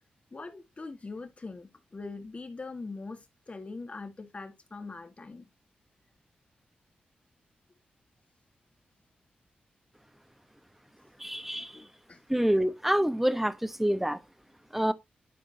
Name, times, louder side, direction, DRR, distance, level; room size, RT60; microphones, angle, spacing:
voice 1, 0.3-5.5 11.7-12.2, left 3 dB, 40° left, 1.8 m, -42 dB
voice 2, 11.2-11.8 12.3-14.2 14.7-14.9, equal, 5° right, 1.0 m, -27 dB
12.0 x 4.6 x 2.7 m
cardioid pair, 50°, 3 cm